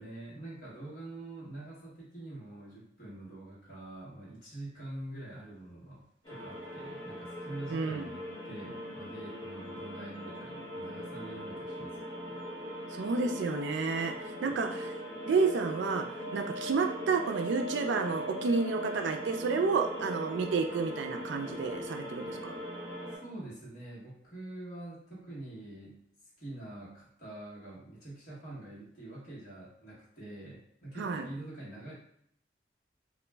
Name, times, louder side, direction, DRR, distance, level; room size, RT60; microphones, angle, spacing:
voice 1, 0.0-12.0 12.2-12.4 14.4-14.6 23.1-26.0 26.4-31.9, right 1 dB, 50° left, -9 dB, 1.1 m, -45 dB
sound 1, 6.3-23.2, equal, 30° left, 0.8 m, -40 dB
voice 2, 7.7-8.1 12.9-15.0 15.3-16.0 16.3-22.6 31.0-31.3, right 4 dB, 85° right, 5 dB, 0.3 m, -30 dB
2.4 x 2.0 x 3.3 m, 0.69 s
head